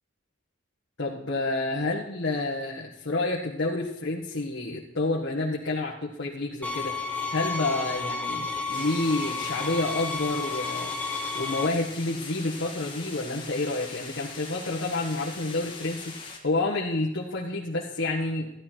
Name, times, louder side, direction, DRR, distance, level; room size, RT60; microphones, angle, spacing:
voice 1, 1.0-10.9 11.3-18.5, left 2 dB, 70° left, -5 dB, 1.8 m, -29 dB
sound 1, 6.6-11.7, left 4 dB, 5° left, 1.0 m, -32 dB
sound 2, 8.7-16.4, left 4 dB, 25° left, 1.8 m, -41 dB
14.5 x 12.0 x 4.6 m, 0.83 s
head